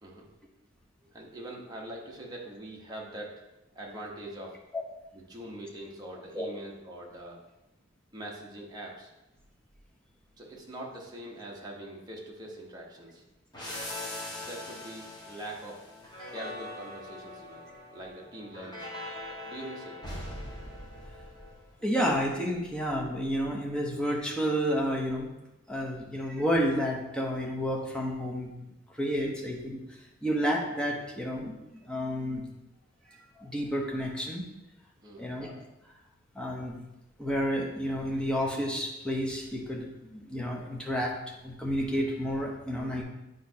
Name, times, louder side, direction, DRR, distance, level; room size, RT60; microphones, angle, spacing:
voice 1, 1.0-3.4 3.7-4.6 5.1-7.4 8.1-9.1 10.4-13.2 14.3-15.8 16.3-18.9 19.4-20.0 35.0-35.4, right 1 dB, 20° right, -2 dB, 1.1 m, -43 dB
sound 1, 13.5-22.0, left 1 dB, 20° left, 1.5 m, -41 dB
voice 2, 21.8-25.3 25.7-28.5 28.9-29.8 30.2-31.5 31.9-32.4 33.4-34.4 35.2-35.6 36.3-36.8 37.2-41.2 41.4-43.0, equal, 5° left, -2 dB, 1.0 m, -30 dB
8.5 x 5.2 x 2.8 m, 0.96 s
head